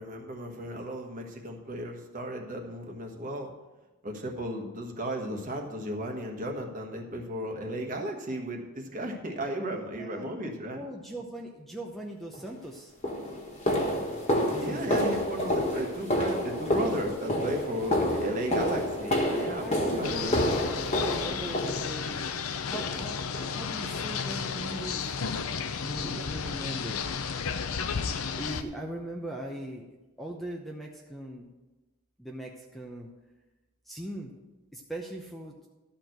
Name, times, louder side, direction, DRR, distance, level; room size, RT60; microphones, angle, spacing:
voice 1, 0.0-3.5 4.0-10.8 14.6-20.6, right 1 dB, 35° right, 2 dB, 1.3 m, -35 dB
voice 2, 9.9-10.3 10.7-12.9 14.5-15.2 17.8-18.2 19.6-22.3 22.6-25.2 25.8-27.0 28.4-29.9 30.2-31.5 32.2-33.1 33.9-34.3 34.7-35.5, right 1 dB, ahead, 0 dB, 0.7 m, -40 dB
sound 1, 12.3-12.5 13.0-22.2 22.7-23.1 23.3-23.6 23.9-24.1 24.6-24.7 25.2-25.3, equal, 30° left, 1.5 m, -29 dB
sound 2, 20.0-28.6, left 6 dB, 75° left, 0.6 m, -33 dB
12.5 x 4.5 x 7.9 m, 1.1 s
head